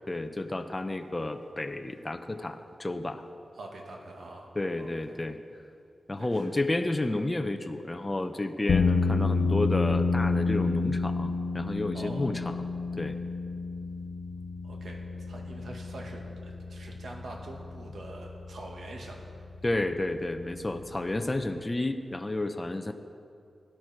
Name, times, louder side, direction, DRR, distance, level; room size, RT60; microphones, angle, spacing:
voice 1, 0.1-3.3 4.5-5.4 6.1-12.5 13.0-13.2 19.6-22.9, left 2 dB, 20° left, 8 dB, 0.7 m, -31 dB
voice 2, 3.5-4.5 4.8-5.2 6.2-6.5 11.9-12.3 14.6-15.0 15.2-19.2, right 2 dB, 80° right, 0 dB, 2.1 m, -44 dB
sound 1, 8.7-21.2, left 4 dB, 75° left, 0.6 m, -30 dB
17.0 x 11.5 x 4.6 m, 2.5 s
wide cardioid pair, 95°, 0 cm